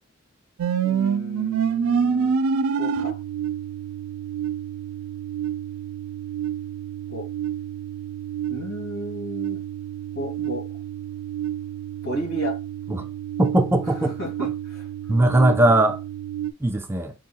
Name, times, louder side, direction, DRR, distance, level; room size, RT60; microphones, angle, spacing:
sound 1, 0.6-16.5, right 7 dB, 85° right, 0.4 m, -28 dB
voice 1, 0.8-2.3 2.8-3.2 7.1-7.3 8.5-9.6 10.1-10.6 12.0-12.6 14.0-14.8, equal, 75° left, 2.7 m, -33 dB
voice 2, 13.4-14.2 15.1-16.0 16.6-17.1, right 1 dB, 10° right, 0.3 m, -19 dB
4.6 x 2.3 x 4.4 m
head